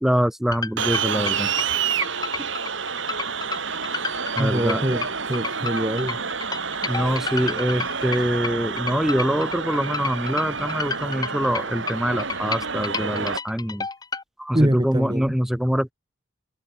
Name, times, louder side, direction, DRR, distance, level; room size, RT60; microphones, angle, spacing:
voice 1, 0.0-1.5 4.4-5.0 6.8-13.9 14.4-15.9, equal, ahead, 0.4 m, -24 dB
sound 1, 0.5-14.2, left 4 dB, 20° left, 0.8 m, -31 dB
sound 2, 0.8-13.4, right 6 dB, 70° right, 2.3 m, -29 dB
voice 2, 4.4-6.2 14.5-15.4, right 1 dB, 20° right, 1.3 m, -24 dB
head